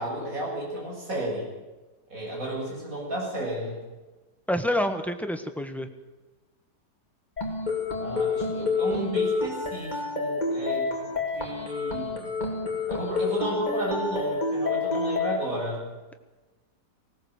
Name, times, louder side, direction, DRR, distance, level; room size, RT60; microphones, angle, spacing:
voice 1, 0.0-1.5 2.1-3.8 8.0-12.3 12.9-15.8, right 1 dB, 50° right, -3 dB, 8.0 m, -32 dB
voice 2, 4.5-5.9, left 1 dB, ahead, 7 dB, 1.2 m, -27 dB
sound 1, 7.4-15.4, left 3 dB, 25° left, 3.3 m, -28 dB
19.5 x 18.0 x 8.1 m, 1.2 s
omnidirectional pair, 1.8 m